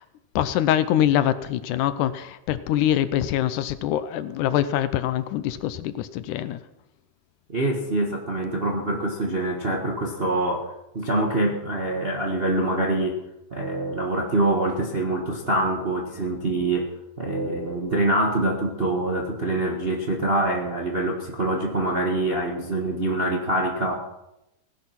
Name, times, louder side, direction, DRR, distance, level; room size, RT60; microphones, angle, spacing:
voice 1, 0.4-6.6, left 11 dB, 80° left, 13 dB, 2.2 m, -24 dB
voice 2, 7.5-13.2 13.5-23.9, right 1 dB, 35° right, 1 dB, 0.9 m, -25 dB
17.5 x 10.5 x 5.9 m, 0.88 s
omnidirectional pair, 3.7 m